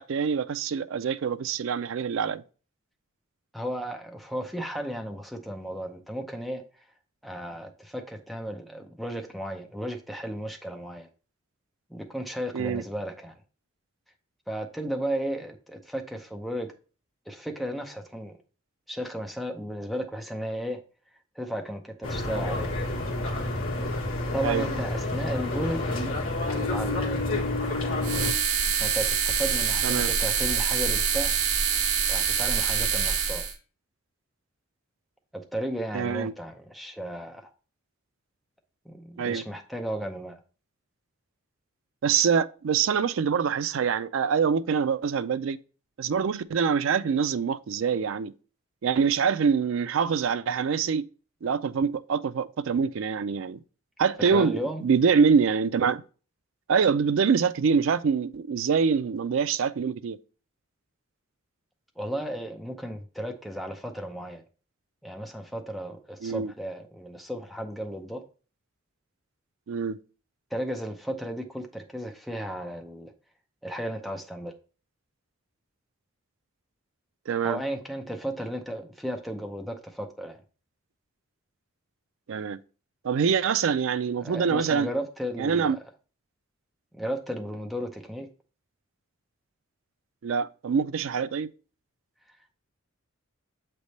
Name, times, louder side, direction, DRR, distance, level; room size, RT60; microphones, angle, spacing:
voice 1, 0.0-2.4 12.5-12.8 24.4-24.7 29.8-30.1 35.9-36.3 39.2-39.4 42.0-45.6 46.0-48.3 48.8-51.1 51.4-53.6 54.0-56.0 56.7-60.2 66.2-66.5 69.7-70.0 77.3-77.6 82.3-82.6 83.0-84.9 85.4-85.8 90.2-91.5, right 6 dB, 65° right, 0.4 m, -25 dB
voice 2, 3.5-6.9 7.2-11.1 11.9-13.3 14.5-16.7 17.3-18.4 18.9-20.8 21.4-22.7 24.3-25.8 26.5-27.0 28.7-31.4 32.1-33.5 35.3-37.5 38.9-40.4 54.2-54.8 62.0-64.4 65.0-68.2 70.5-73.1 73.6-74.5 77.4-80.4 84.2-85.8 86.9-88.3, equal, ahead, 0.5 m, -34 dB
sound 1, 22.0-28.3, left 2 dB, 70° left, 1.4 m, -29 dB
sound 2, 28.0-33.5, right 7 dB, 85° right, 1.0 m, -25 dB
7.3 x 3.3 x 4.0 m
head